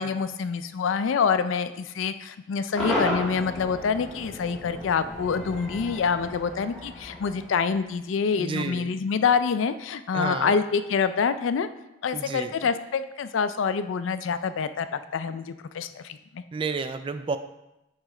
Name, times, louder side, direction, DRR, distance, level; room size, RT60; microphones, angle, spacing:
voice 1, 0.0-11.7 12.0-16.4, left 6 dB, 85° left, 11 dB, 0.4 m, -26 dB
Cheering / Crowd / Fireworks, 2.8-8.0, left 1 dB, 5° left, 2.1 m, -33 dB
voice 2, 8.4-8.9 10.1-10.5 12.1-12.5 16.5-17.4, right 4 dB, 25° right, 9 dB, 0.3 m, -30 dB
9.4 x 3.2 x 3.8 m, 0.92 s
head